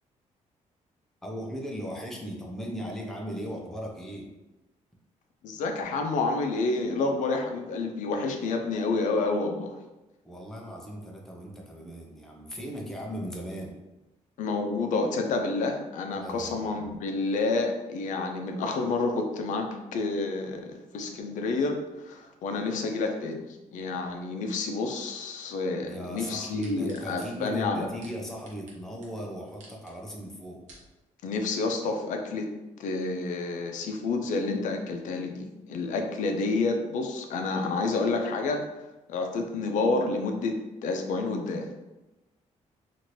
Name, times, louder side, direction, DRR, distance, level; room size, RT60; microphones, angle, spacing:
voice 1, 1.2-4.3 10.2-13.8 16.1-17.0 25.8-30.6, equal, 5° left, -1 dB, 0.4 m, -38 dB
voice 2, 5.4-9.7 14.4-19.7 19.9-23.4 23.7-27.9 31.2-32.5 32.8-38.6 39.1-40.6 40.8-41.7, left 3 dB, 80° left, 3 dB, 0.4 m, -29 dB
sound 1, 26.2-28.8 29.0-29.1 29.5-29.9 30.4-30.9 31.5-31.6, right 2 dB, 70° right, 0.7 m, -52 dB
2.8 x 2.5 x 3.0 m, 1.0 s
cardioid pair, 175°, 13 cm